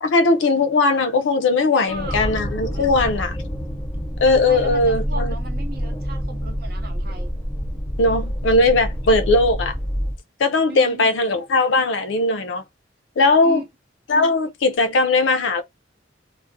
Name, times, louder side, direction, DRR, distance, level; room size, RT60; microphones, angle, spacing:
voice 1, 0.0-3.3 4.2-5.4 8.0-9.8 10.4-12.6 13.2-13.6 14.1-15.6, left 3 dB, 80° left, 0.4 m, -19 dB
voice 2, 1.7-2.3 2.7-3.3 4.4-7.3 10.7-11.1 13.4-13.6, right 2 dB, 55° right, 0.6 m, -36 dB
sound 1, 1.9-10.2, equal, 10° left, 0.6 m, -27 dB
2.4 x 2.0 x 2.5 m
head